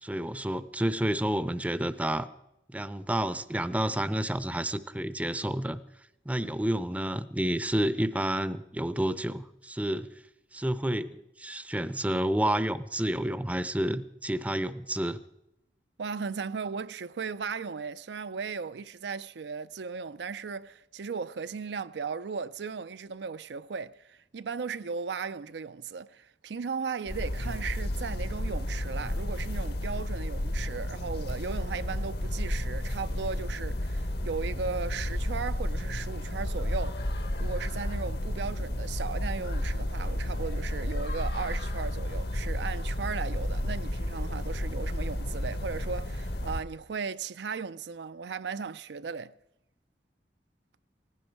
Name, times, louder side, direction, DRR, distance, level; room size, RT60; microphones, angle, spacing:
voice 1, 0.0-2.3 2.7-5.8 6.3-10.1 10.5-15.2, right 1 dB, 10° right, 0.6 m, -30 dB
voice 2, 16.0-37.1 37.4-49.3, right 5 dB, 75° right, 0.5 m, -36 dB
sound 1, 27.1-46.6, left 1 dB, 60° left, 1.2 m, -32 dB
18.5 x 15.5 x 4.6 m
head